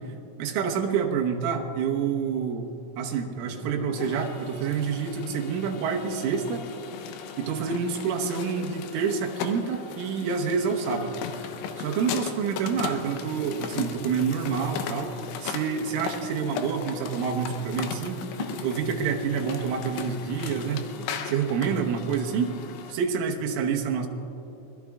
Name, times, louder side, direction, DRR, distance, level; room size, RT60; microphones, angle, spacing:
voice 1, 0.4-2.7 3.0-6.7 7.4-11.2 11.8-15.1 15.4-20.9 21.3-22.6 22.9-24.1, right 6 dB, 75° right, 2 dB, 3.5 m, -28 dB
sound 1, 3.4-22.9, left 6 dB, 75° left, 2.8 m, -37 dB
25.0 x 20.5 x 2.4 m, 2.9 s
omnidirectional pair, 6.0 m